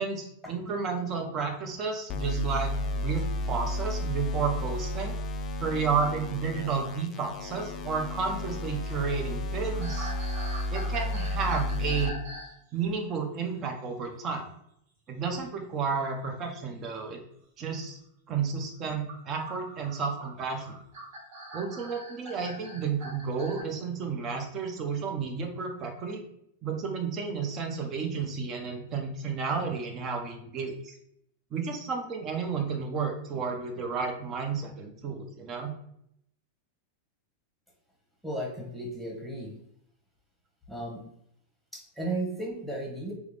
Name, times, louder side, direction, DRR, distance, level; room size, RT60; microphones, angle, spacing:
voice 1, 0.0-5.1 5.6-10.1 10.7-12.2 12.7-14.4 15.1-17.2 17.6-18.0 18.3-20.8 21.5-26.2 26.6-31.0 31.5-35.7, right 5 dB, 35° right, 3 dB, 0.7 m, -32 dB
sound 1, 2.1-12.1, left 1 dB, 35° left, 0.4 m, -32 dB
sound 2, 9.7-12.6 12.8-13.1 15.3-15.5 16.8-16.9 18.8-23.6, right 1 dB, 65° right, 1.4 m, -43 dB
voice 2, 38.2-39.5 40.7-41.0 41.7-43.1, right 1 dB, ahead, -1 dB, 1.1 m, -34 dB
3.5 x 2.1 x 3.2 m, 0.73 s
hypercardioid pair, 110°, 0 cm